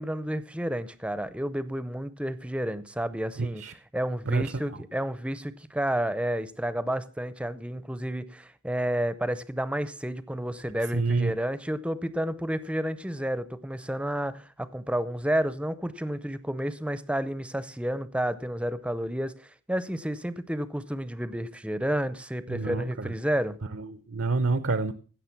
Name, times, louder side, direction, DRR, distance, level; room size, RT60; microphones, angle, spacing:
voice 1, 0.0-3.6 3.9-23.6, right 1 dB, 5° right, 0.6 m, -31 dB
voice 2, 3.4-3.7 4.3-4.5 10.9-11.3 22.5-23.1 23.7-24.9, right 3 dB, 55° right, 0.6 m, -28 dB
16.5 x 6.7 x 5.9 m
head